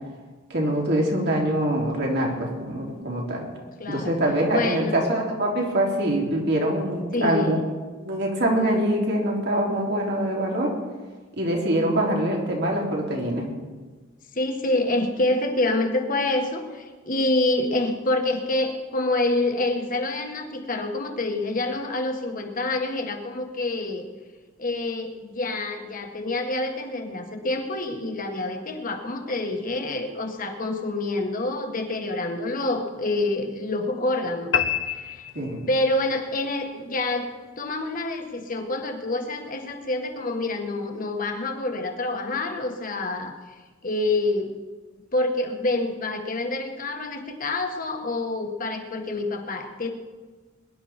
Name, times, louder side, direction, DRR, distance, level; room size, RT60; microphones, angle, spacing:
voice 1, 0.5-3.4 3.9-7.6 8.0-10.7 11.4-13.5 35.3-35.6, right 1 dB, 60° right, -1 dB, 3.4 m, -24 dB
voice 2, 3.8-4.2 4.5-5.0 7.1-7.7 14.3-24.1 24.6-34.5 34.9-35.3 35.7-37.3 37.6-44.5 45.1-49.9, left 2 dB, 45° left, 4 dB, 1.7 m, -27 dB
sound 1, 34.5-36.1, left 8 dB, 70° left, 0.8 m, -27 dB
22.0 x 11.0 x 4.4 m, 1.4 s
head